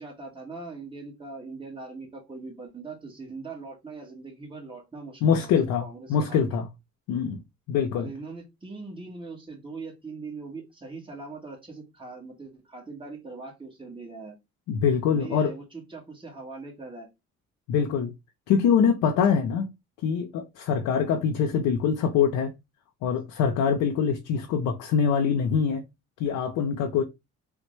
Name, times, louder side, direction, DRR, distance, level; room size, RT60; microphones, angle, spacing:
voice 1, 0.0-5.5 5.8-6.6 7.9-14.4 15.1-17.1, right 3 dB, 15° right, 1.2 m, -41 dB
voice 2, 5.2-5.8 6.1-6.7 7.1-7.4 7.7-8.1 14.7-15.5 17.7-18.1 18.5-19.7 20.0-22.5 23.0-25.8 26.2-27.0, left 7 dB, 85° left, 0.5 m, -24 dB
3.4 x 2.1 x 3.0 m
cardioid pair, 90°, 30 cm